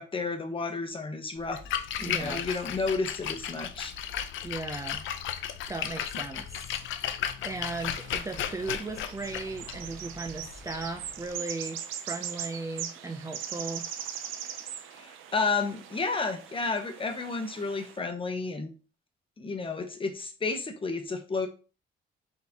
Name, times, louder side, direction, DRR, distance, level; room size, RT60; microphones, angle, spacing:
voice 1, 0.0-1.6 2.0-3.9 14.9-18.7 19.4-21.5, left 4 dB, 25° left, 6 dB, 0.9 m, -31 dB
Splash splatter, 1.4-11.3, left 9 dB, 75° left, 0.5 m, -35 dB
voice 2, 2.0-2.4 4.4-5.0 5.4-6.6 7.4-13.9, right 3 dB, 15° right, 6 dB, 0.4 m, -37 dB
sound 1, 7.4-18.0, right 9 dB, 90° right, 0.5 m, -41 dB
4.1 x 4.1 x 2.8 m, 0.35 s
cardioid pair, 90°, 20 cm